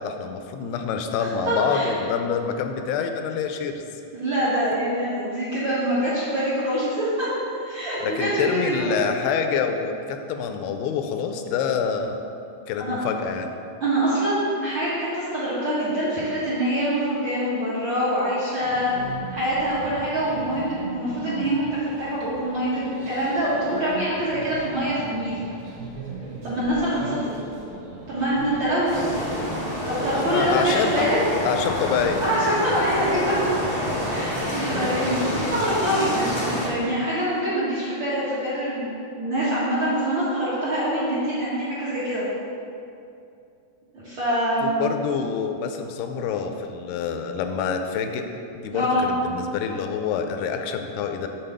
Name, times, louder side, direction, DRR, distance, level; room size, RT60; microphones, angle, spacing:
voice 1, 0.0-3.8 8.0-12.2 12.7-13.5 27.0-27.2 30.1-31.2 31.5-32.2 44.6-48.3 48.5-51.3, left 6 dB, 90° left, 6 dB, 2.6 m, -26 dB
voice 2, 1.2-1.9 4.1-7.3 7.6-9.0 12.8-13.0 13.8-18.9 19.3-25.3 26.4-27.4 28.1-29.1 29.9-31.2 32.2-33.4 34.1-42.2 43.9-44.9 48.7-49.0, right 1 dB, 70° right, -10 dB, 1.1 m, -25 dB
sound 1, 18.6-28.8, right 3 dB, 90° right, 1.1 m, -38 dB
sound 2, 28.8-36.7, left 1 dB, 50° left, 0.6 m, -28 dB
7.7 x 4.1 x 6.7 m, 2.6 s
omnidirectional pair, 4.4 m